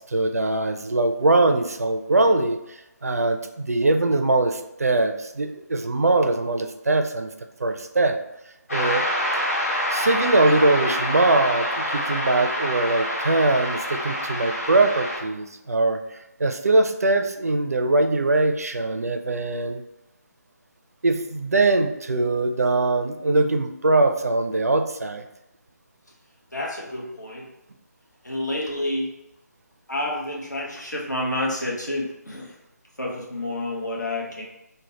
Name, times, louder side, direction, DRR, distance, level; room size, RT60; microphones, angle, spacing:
voice 1, 0.1-7.3 7.6-8.2 8.7-9.1 9.3-9.4 9.9-16.0 16.4-19.8 21.0-25.2, right 2 dB, 60° right, 6 dB, 0.4 m, -22 dB
sound 1, 8.7-15.2, equal, 55° left, 1.4 m, -26 dB
voice 2, 26.5-27.5 28.2-29.1 29.9-32.6 33.0-34.4, left 1 dB, 85° left, -3 dB, 1.1 m, -29 dB
3.2 x 2.2 x 4.1 m, 0.90 s
figure-of-eight pair, 150°, 9 cm